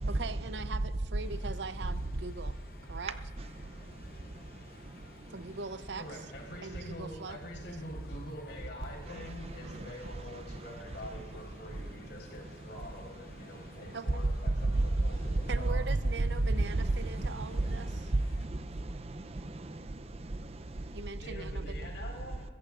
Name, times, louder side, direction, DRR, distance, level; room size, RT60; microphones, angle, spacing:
voice 1, 0.1-2.5 2.9-3.1 5.3-6.2 6.6-7.4 13.9-14.2 15.5-17.9 20.9-21.9, right 4 dB, 80° right, 0.6 m, -41 dB
sound 1, 1.2-18.5, left 2 dB, 50° left, 0.9 m, -55 dB
voice 2, 6.0-14.8 15.0-15.8 21.1-22.4, left 1 dB, 90° left, 4.4 m, -45 dB
voice 3, 15.2-16.0 16.6-19.8 20.2-20.4, right 2 dB, 35° right, 0.5 m, -32 dB
24.5 x 14.5 x 2.5 m
head